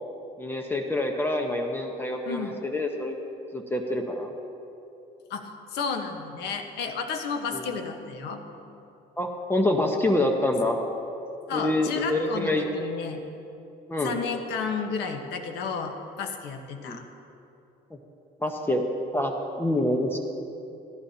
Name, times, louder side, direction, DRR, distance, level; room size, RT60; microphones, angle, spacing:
voice 1, 0.4-3.2 3.5-4.3 7.5-7.7 9.2-10.8 11.5-12.7 13.9-14.1 16.8-17.0 18.4-18.8 19.1-20.2, left 1 dB, 15° left, 2 dB, 1.1 m, -26 dB
voice 2, 5.3-8.8 11.5-13.2 14.0-17.0, left 5 dB, 80° left, 4 dB, 1.3 m, -32 dB
16.5 x 15.0 x 2.9 m, 2.7 s
cardioid pair, 110°, 17 cm